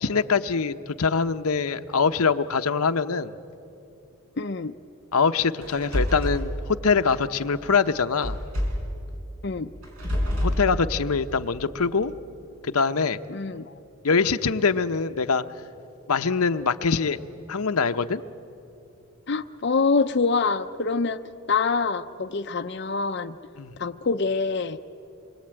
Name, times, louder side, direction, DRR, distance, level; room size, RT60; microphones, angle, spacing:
voice 1, 0.0-3.3 5.1-8.4 10.4-12.1 12.6-13.2 14.0-15.4 16.1-17.2 17.5-18.2 23.6-23.7, left 5 dB, 80° left, 9 dB, 0.8 m, -23 dB
voice 2, 4.4-4.7 9.4-9.7 13.3-13.7 19.3-21.2 21.5-23.4 23.8-24.8, left 4 dB, 50° left, 7 dB, 0.6 m, -25 dB
sound 1, 5.6-6.5 8.2-8.9 9.8-10.7, left 1 dB, 80° right, 6.5 m, -26 dB
26.5 x 23.0 x 8.9 m, 2.8 s
head